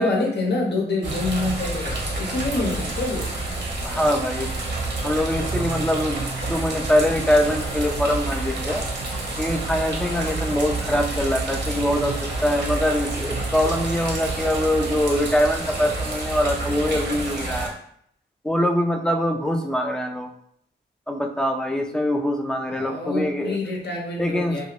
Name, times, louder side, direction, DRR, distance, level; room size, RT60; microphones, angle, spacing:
voice 1, 0.0-3.3 22.7-24.7, left 2 dB, 70° left, -1 dB, 0.7 m, -26 dB
sound 1, 1.0-17.7, right 2 dB, 70° right, 0.8 m, -28 dB
voice 2, 3.8-4.5 5.0-8.8 9.4-17.8 18.4-20.3 21.1-23.6 24.2-24.6, equal, 5° left, 4 dB, 0.3 m, -23 dB
2.6 x 2.4 x 3.1 m, 0.69 s
cardioid pair, 75°, 18 cm